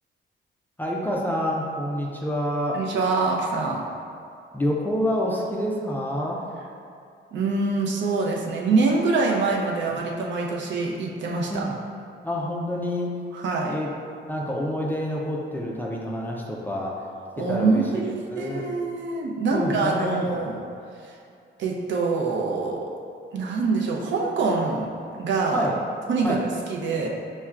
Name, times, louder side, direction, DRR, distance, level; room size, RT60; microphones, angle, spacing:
voice 1, 0.8-2.8 4.5-6.4 11.5-11.8 12.2-13.1 13.7-13.9 14.2-17.0 17.4-18.7 19.5-20.4 25.5-25.8 26.2-26.4, equal, 10° left, -3 dB, 0.3 m, -27 dB
voice 2, 2.7-3.8 7.3-11.6 13.3-13.7 17.4-20.6 21.6-22.8 23.3-24.9 25.2-25.6 26.1-26.4 26.7-27.1, right 4 dB, 75° right, -1 dB, 0.5 m, -25 dB
5.6 x 2.2 x 2.3 m, 2.5 s
wide cardioid pair, 150°, 19 cm